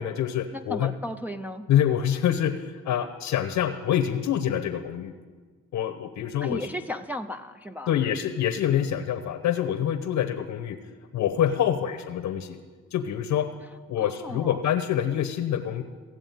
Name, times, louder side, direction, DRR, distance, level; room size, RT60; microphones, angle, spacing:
voice 1, 0.0-0.9 1.7-5.1 5.7-6.7 7.9-10.8 11.1-12.6 12.9-13.5 13.9-15.8, left 10 dB, 80° left, 7 dB, 1.0 m, -26 dB
voice 2, 0.5-1.7 6.4-8.0 14.0-14.6, left 1 dB, 5° right, 4 dB, 0.6 m, -35 dB
15.5 x 7.7 x 9.2 m, 1.5 s
cardioid pair, 90°, 30 cm